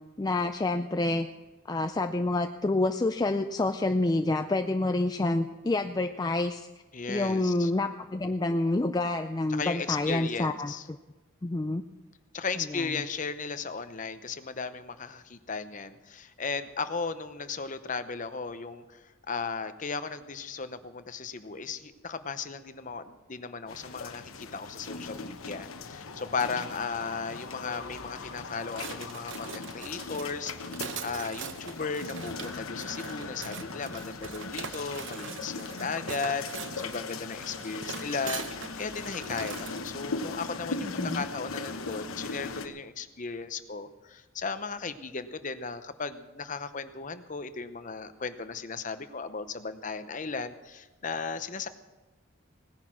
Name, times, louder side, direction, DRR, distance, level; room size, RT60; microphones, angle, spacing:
voice 1, 0.2-1.3 1.7-6.7 7.1-11.0 11.4-11.8 12.7-12.8 40.8-41.2, left 2 dB, 20° left, 6 dB, 0.4 m, -28 dB
voice 2, 6.9-7.7 9.5-10.9 12.3-38.4 38.8-51.7, left 4 dB, 40° left, 11 dB, 0.8 m, -36 dB
sound 1, 23.7-42.7, left 4 dB, 85° left, 1.1 m, -39 dB
sound 2, 28.7-39.8, right 6 dB, 60° right, 0.9 m, -42 dB
17.5 x 10.5 x 6.1 m, 1.1 s
head